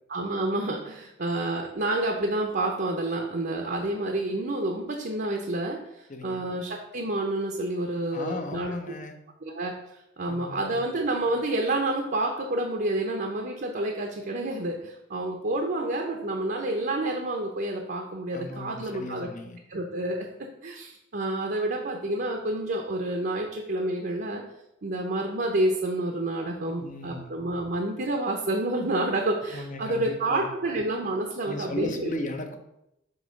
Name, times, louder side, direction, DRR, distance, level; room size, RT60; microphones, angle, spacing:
voice 1, 0.1-8.7 9.4-9.7 10.2-19.3 19.7-20.3 20.6-24.4 24.8-32.1, right 2 dB, 50° right, 2 dB, 0.7 m, -29 dB
voice 2, 6.1-6.5 8.1-9.2 10.3-10.8 18.3-19.6 26.8-27.4 29.5-30.5 31.4-32.6, left 2 dB, 40° left, 5 dB, 0.8 m, -36 dB
8.0 x 2.9 x 5.2 m, 0.84 s
head